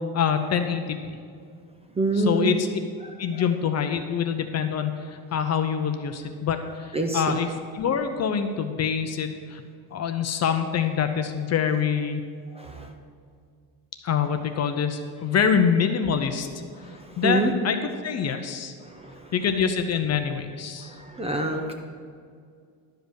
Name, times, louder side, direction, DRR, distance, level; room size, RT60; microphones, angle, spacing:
voice 1, 0.1-1.0 2.1-2.7 3.2-9.6 9.9-12.2 14.0-16.5 17.2-18.7 19.3-20.9, left 7 dB, 35° left, 7 dB, 0.6 m, -25 dB
voice 2, 2.0-2.6 6.9-7.4 12.6-12.9 17.2-17.5 19.0-19.2 21.1-21.7, right 2 dB, 15° right, 3 dB, 0.5 m, -25 dB
11.5 x 5.2 x 6.3 m, 2.2 s
cardioid pair, 145°, 47 cm